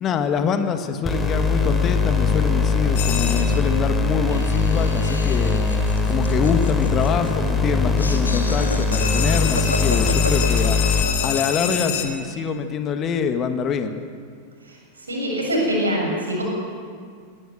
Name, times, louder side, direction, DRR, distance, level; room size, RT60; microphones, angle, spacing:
voice 1, 0.0-5.6 6.1-10.8 11.2-13.9, left 6 dB, 30° left, 8 dB, 1.5 m, -25 dB
sound 1, 1.0-11.0, left 4 dB, 10° left, 3.2 m, -21 dB
sound 2, 3.0-3.8 8.9-12.1, left 9 dB, 50° left, 2.5 m, -27 dB
Laughter, 4.3-11.9, left 2 dB, 80° left, 1.9 m, -32 dB
voice 2, 11.6-12.0 15.1-16.4, equal, 75° right, -1 dB, 7.0 m, -24 dB
19.0 x 18.0 x 8.0 m, 2.1 s
figure-of-eight pair, 90°, 0 cm